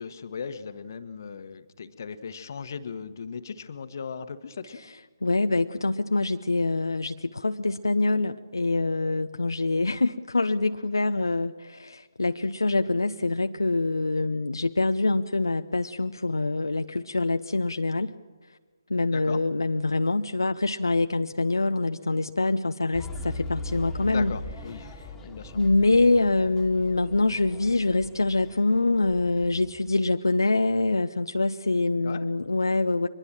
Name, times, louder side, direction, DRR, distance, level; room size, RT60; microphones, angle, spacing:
voice 1, 0.0-4.8 19.1-19.4 24.1-24.9 25.2-25.6 32.0-32.2, left 6 dB, 50° left, 11 dB, 1.3 m, -37 dB
voice 2, 5.2-18.1 18.5-18.6 18.9-24.3 24.9-25.1 25.5-33.1, left 2 dB, 80° left, 8 dB, 0.7 m, -25 dB
sound 1, 22.9-29.9, left 2 dB, 10° left, 2.2 m, -40 dB
23.5 x 20.5 x 7.5 m, 1.4 s
figure-of-eight pair, 140°, 2 cm